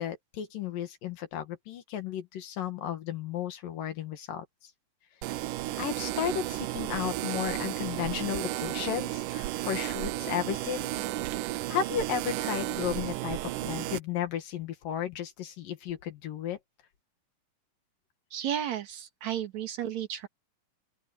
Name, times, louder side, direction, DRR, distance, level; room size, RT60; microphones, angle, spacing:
voice 1, 0.0-4.7 5.8-11.1 11.4-16.6, left 9 dB, 70° left, 3.4 m, -34 dB
sound 1, 5.2-14.0, right 15 dB, 80° right, 2.1 m, -33 dB
voice 2, 18.3-20.3, right 10 dB, 60° right, 2.7 m, -33 dB
open air
omnidirectional pair, 4.1 m